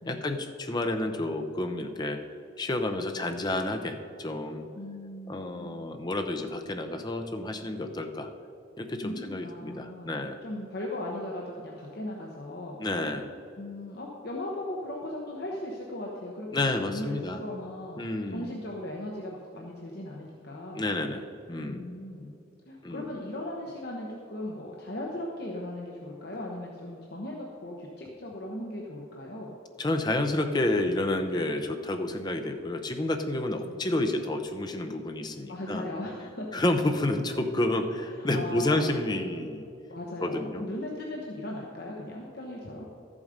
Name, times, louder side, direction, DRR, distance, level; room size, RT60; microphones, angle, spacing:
voice 1, 0.1-2.2 2.6-4.7 5.3-8.3 8.8-10.4 12.8-13.3 16.5-17.4 18.0-18.5 20.7-21.9 22.8-23.1 29.8-35.9 36.5-39.7 40.2-40.6, left 2 dB, 20° left, 6 dB, 0.6 m, -30 dB
voice 2, 4.8-6.0 9.0-10.2 10.4-12.8 13.6-18.0 18.3-20.9 21.6-22.4 22.7-29.5 33.6-33.8 35.5-36.5 38.1-38.8 39.9-42.9, left 1 dB, 55° left, -2 dB, 1.1 m, -38 dB
13.0 x 7.2 x 5.1 m, 2.7 s
head